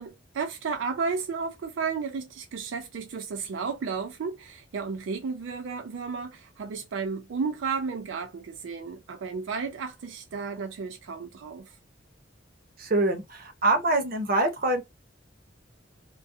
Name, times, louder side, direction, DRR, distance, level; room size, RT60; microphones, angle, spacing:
voice 1, 0.0-11.8, right 5 dB, 80° right, 0.4 m, -33 dB
voice 2, 12.8-14.8, right 2 dB, 50° right, 0.7 m, -25 dB
2.3 x 2.2 x 2.5 m
head